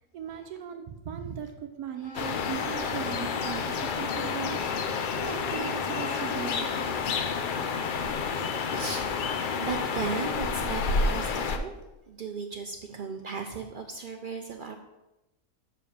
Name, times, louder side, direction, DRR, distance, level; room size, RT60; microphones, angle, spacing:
voice 1, 0.1-1.5 1.8-4.6 5.1-6.7, right 9 dB, 80° right, 6 dB, 1.2 m, -38 dB
voice 2, 0.9-1.4 2.0-2.2 8.3-9.2 9.6-11.7 12.1-14.8, right 5 dB, 65° right, 4 dB, 0.5 m, -36 dB
sound 1, 2.0-10.8, left 2 dB, 55° left, 1.3 m, -46 dB
sound 2, 2.1-11.6, left 5 dB, 75° left, 0.4 m, -30 dB
5.9 x 4.9 x 6.6 m, 1.0 s
omnidirectional pair, 1.6 m